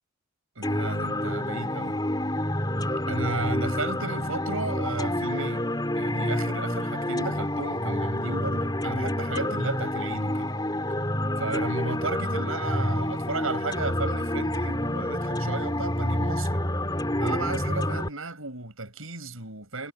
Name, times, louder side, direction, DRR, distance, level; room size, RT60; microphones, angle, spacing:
voice 1, 0.5-2.0 3.1-10.5 11.4-16.6 17.2-19.9, right 3 dB, 80° right, 6.7 m, -34 dB
sound 1, 0.6-18.1, left 1 dB, 20° left, 3.9 m, -28 dB
head